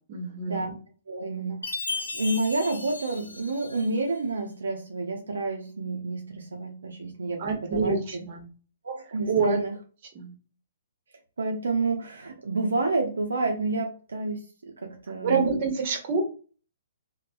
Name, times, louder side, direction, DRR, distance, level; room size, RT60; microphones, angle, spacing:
voice 1, 0.1-0.7 7.4-8.5 9.3-9.6 10.1-10.3 15.2-16.2, right 4 dB, 40° right, 4 dB, 0.8 m, -26 dB
voice 2, 1.1-8.2 8.8-9.7 11.4-15.5, right 3 dB, 75° right, 2 dB, 0.5 m, -29 dB
Chime, 1.6-4.1, left 3 dB, 90° left, 0.6 m, -35 dB
3.2 x 2.1 x 2.5 m, 0.38 s
figure-of-eight pair, 125°, 0 cm